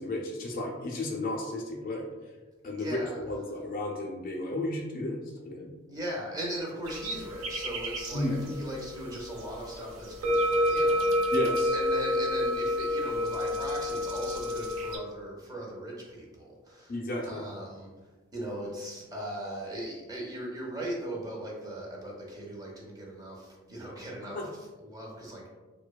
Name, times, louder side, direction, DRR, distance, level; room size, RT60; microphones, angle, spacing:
voice 1, 0.0-2.1 2.6-3.0 3.2-5.7 8.1-8.5 11.3-11.7 16.9-17.4 24.3-24.5, left 1 dB, 45° left, 0 dB, 0.3 m, -33 dB
voice 2, 2.7-3.2 5.9-11.3 11.7-16.9 17.3-17.9 18.3-25.5, right 1 dB, 20° right, -3 dB, 0.5 m, -39 dB
sound 1, 6.8-15.0, left 1 dB, 85° right, 0.5 m, -29 dB
2.6 x 2.1 x 2.2 m, 1.3 s
head